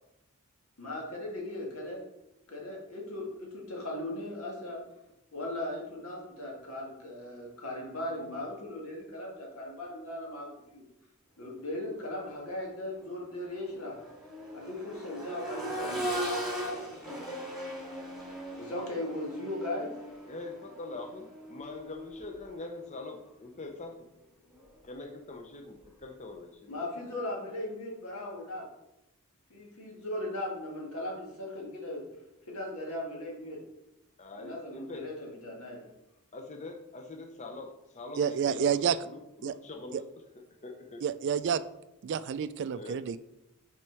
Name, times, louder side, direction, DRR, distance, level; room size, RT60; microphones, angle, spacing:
voice 1, 0.8-2.0 2.5-4.8 5.3-10.8 11.4-14.0 14.5-16.1 18.6-19.9 26.7-28.7 29.5-32.0 32.5-33.6 34.4-35.9, left 1 dB, 80° left, -1 dB, 1.9 m, -38 dB
Accelerating revving vroom, 12.3-12.5 12.9-22.8 24.5-24.6, equal, ahead, 2.5 m, -39 dB
voice 2, 20.3-24.0 24.8-27.1 34.2-35.1 36.3-40.0 40.5-41.0 42.7-43.0, left 2 dB, 30° left, 3 dB, 0.6 m, -43 dB
voice 3, 38.2-39.0 39.4-39.5 39.9-40.0 41.0-41.6 42.0-43.2, right 7 dB, 55° right, 14 dB, 0.3 m, -29 dB
6.0 x 4.4 x 4.5 m, 0.89 s
head